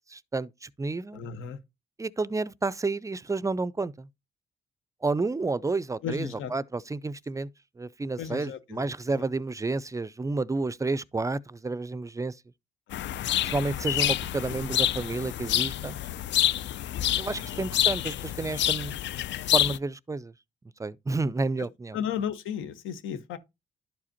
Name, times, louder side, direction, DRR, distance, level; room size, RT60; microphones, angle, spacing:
voice 1, 0.1-1.2 2.0-4.1 5.0-7.5 7.8-12.4 13.4-16.0 17.1-19.0 19.5-20.3 20.8-22.0, right 3 dB, 15° right, 0.4 m, -30 dB
voice 2, 1.1-1.6 6.0-6.5 8.2-8.8 9.2-9.3 12.9-13.3 17.4-17.6 21.9-23.4, left 8 dB, 85° left, 1.1 m, -35 dB
sound 1, 12.9-19.8, left 12 dB, 65° left, 0.4 m, -27 dB
11.5 x 4.9 x 2.8 m
cardioid pair, 90°, 20 cm